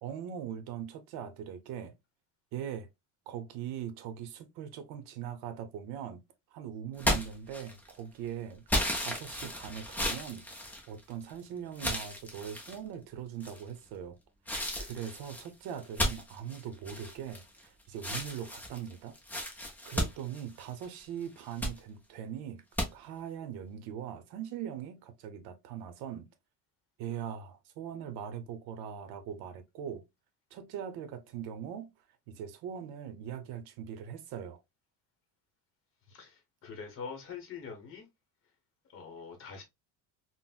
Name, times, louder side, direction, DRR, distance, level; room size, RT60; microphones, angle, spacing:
voice 1, 0.0-1.9 2.5-2.9 3.3-6.2 6.5-8.6 8.9-14.2 14.8-19.2 19.8-22.6 22.9-26.3 27.0-30.0 30.5-31.9 32.3-34.6, right 9 dB, 70° right, 0.7 m, -41 dB
sound 1, 7.0-8.0 8.7-11.3 11.7-12.8 13.4-13.9 14.5-17.6 18.0-21.0 21.4-21.8 22.8-22.9, left 1 dB, 5° left, 0.3 m, -34 dB
voice 2, 36.1-38.1 38.9-39.6, left 6 dB, 30° left, 0.8 m, -44 dB
3.8 x 2.0 x 2.3 m
cardioid pair, 180°, 40 cm